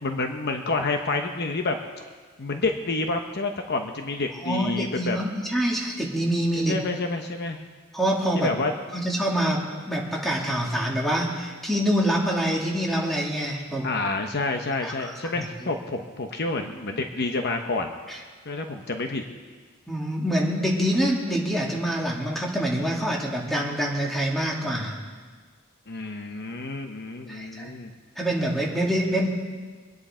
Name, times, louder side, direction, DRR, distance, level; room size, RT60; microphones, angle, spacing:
voice 1, 0.0-1.8 2.4-5.2 6.6-7.6 8.3-8.7 13.8-17.9 18.4-19.2 25.9-27.9, left 3 dB, 55° left, 4 dB, 1.0 m, -28 dB
voice 2, 4.4-6.8 7.9-8.5 8.9-9.6 9.9-13.9 14.8-15.1 18.1-18.2 19.9-25.0 27.3-27.7 28.2-29.3, equal, ahead, -3 dB, 2.4 m, -25 dB
24.5 x 10.0 x 4.4 m, 1.5 s
head